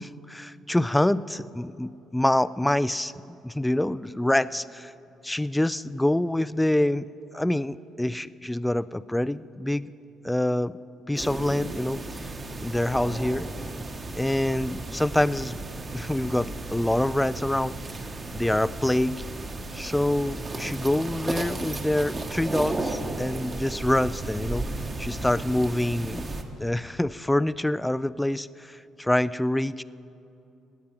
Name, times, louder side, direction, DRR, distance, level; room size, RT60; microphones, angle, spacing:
voice 1, 0.0-4.9 5.2-7.1 7.3-9.9 10.2-10.7 11.1-12.3 12.6-13.5 14.2-15.6 15.9-17.8 18.3-19.2 19.7-24.7 25.0-26.3 26.6-29.8, left 1 dB, 10° left, 17 dB, 0.3 m, -26 dB
sound 1, 11.2-26.4, right 2 dB, 35° right, 1.3 m, -34 dB
17.5 x 9.3 x 5.9 m, 2.8 s
cardioid pair, 80°, 0 cm